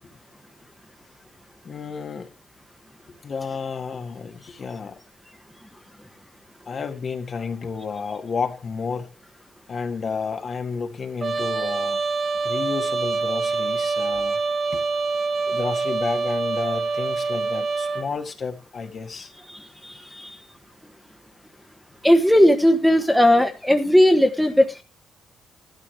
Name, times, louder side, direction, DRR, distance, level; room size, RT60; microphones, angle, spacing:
voice 1, 1.6-2.3 3.2-5.0 6.7-9.1 9.7-12.0 12.4-14.4 14.7-14.8 15.5-19.3, left 5 dB, 45° left, 1.9 m, -31 dB
Trumpet, 11.2-18.1, right 4 dB, 40° right, 2.1 m, -25 dB
voice 2, 19.8-20.3 22.0-24.8, equal, ahead, 1.4 m, -17 dB
14.0 x 12.5 x 3.3 m
cardioid pair, 100°, 0 cm